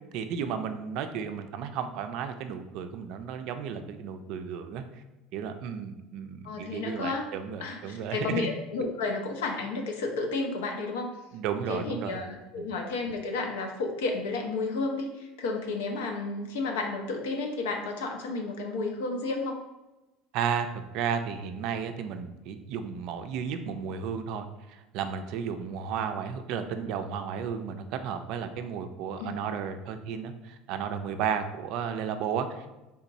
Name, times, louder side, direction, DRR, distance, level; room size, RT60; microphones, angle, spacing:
voice 1, 0.1-4.8 5.3-8.5 11.3-12.2 12.6-12.7 20.3-32.7, right 7 dB, 65° right, 8 dB, 0.3 m, -33 dB
voice 2, 6.4-7.3 7.6-11.1 11.7-19.6 29.2-29.5, left 3 dB, 90° left, 3 dB, 0.6 m, -32 dB
3.5 x 2.9 x 2.6 m, 1.0 s
supercardioid pair, 100°, 0 cm